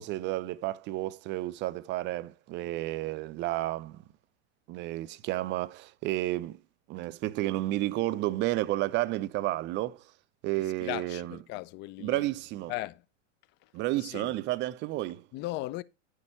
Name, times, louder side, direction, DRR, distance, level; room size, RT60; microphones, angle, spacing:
voice 1, 0.0-4.0 4.7-6.6 6.9-10.0 10.4-11.4 12.0-12.7 13.7-15.2, right 16 dB, 30° right, 0.5 m, -31 dB
voice 2, 10.8-12.3 12.7-13.0 13.6-13.7 14.0-14.3 15.3-15.8, left 18 dB, 30° left, 0.4 m, -37 dB
10.5 x 6.5 x 4.3 m
hypercardioid pair, 95°, 38 cm